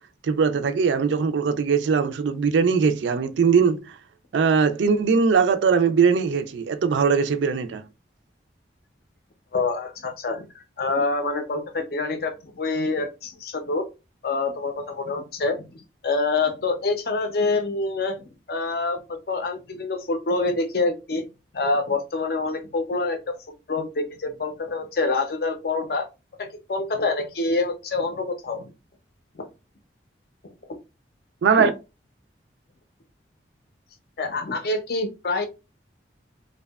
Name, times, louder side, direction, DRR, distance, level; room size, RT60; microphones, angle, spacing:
voice 1, 0.3-3.8 4.3-7.8 31.4-31.7, right 5 dB, 80° right, 0.4 m, -20 dB
voice 2, 9.5-10.5 10.8-13.8 14.2-21.3 21.5-23.3 23.7-26.1 26.4-28.7 29.3-29.5 31.6-31.7 34.2-35.4, left 3 dB, 55° left, 0.5 m, -26 dB
2.6 x 2.2 x 2.2 m
head